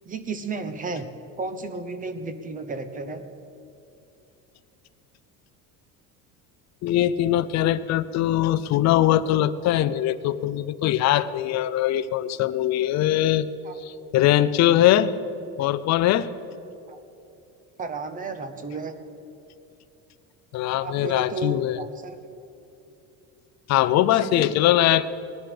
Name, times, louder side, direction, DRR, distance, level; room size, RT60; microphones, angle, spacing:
voice 1, 0.0-1.1 1.4-3.3 13.6-13.7 16.9-17.0 17.8-18.9 20.8-22.2 23.9-24.5, right 3 dB, 25° right, 9 dB, 0.9 m, -33 dB
voice 2, 6.8-13.5 13.8-15.1 15.6-16.3 20.5-21.8 23.7-25.1, left 13 dB, 50° left, 15 dB, 0.6 m, -21 dB
19.0 x 11.0 x 5.1 m, 2.8 s
cardioid pair, 140°, 35 cm